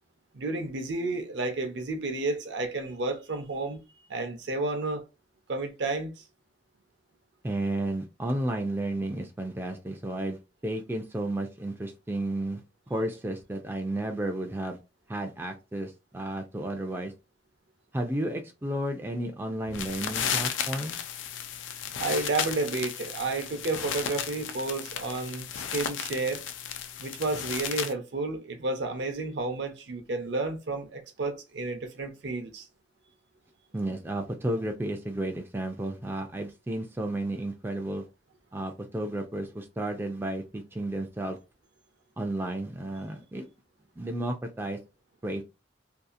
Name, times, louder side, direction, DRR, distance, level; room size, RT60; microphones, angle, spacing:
voice 1, 0.3-3.8 4.1-5.0 5.5-6.2 22.0-26.4 27.0-32.7, right 3 dB, 65° right, 0.6 m, -31 dB
voice 2, 7.4-12.6 12.9-14.8 15.1-17.1 17.9-21.0 33.7-38.1 38.5-41.4 42.2-43.5 44.0-44.8 45.2-45.4, right 1 dB, 10° right, 0.3 m, -32 dB
sound 1, 19.7-27.9, left 8 dB, 90° left, 0.4 m, -34 dB
2.7 x 2.4 x 2.4 m
head